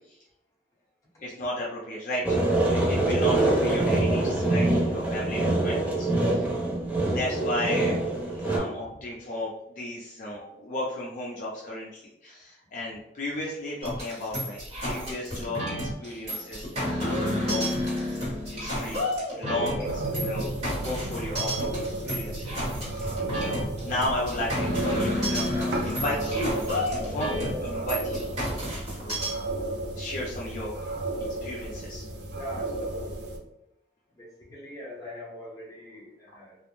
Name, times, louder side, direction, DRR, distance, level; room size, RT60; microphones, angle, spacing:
voice 1, 1.2-2.4 2.7-6.4 7.1-8.0 8.3-17.7 18.5-19.1 19.3-20.5 20.8-22.6 22.9-23.1 23.4-29.2 30.0-30.7 31.4-32.0, left 1 dB, 45° left, -4 dB, 0.4 m, -34 dB
sound 1, 2.2-8.6, right 2 dB, 10° right, 0.4 m, -24 dB
sound 2, 13.8-29.3, equal, 35° right, 1.2 m, -31 dB
sound 3, 19.8-33.4, right 2 dB, 70° right, 0.4 m, -33 dB
voice 2, 32.3-33.2 34.2-36.6, left 1 dB, 20° left, -5 dB, 0.8 m, -42 dB
2.4 x 2.0 x 3.0 m, 0.81 s
head